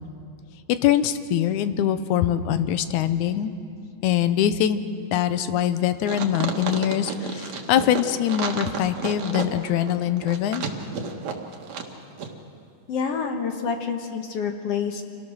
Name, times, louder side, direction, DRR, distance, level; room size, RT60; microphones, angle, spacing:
voice 1, 0.7-3.5 4.0-4.8 5.1-10.7, left 10 dB, 85° left, 11 dB, 2.2 m, -23 dB
sound 1, 6.0-11.9 12.2-12.3, right 6 dB, 65° right, 2.6 m, -31 dB
voice 2, 12.9-15.0, left 6 dB, 60° left, 4 dB, 2.0 m, -27 dB
27.0 x 18.0 x 6.3 m, 2.4 s
omnidirectional pair, 3.4 m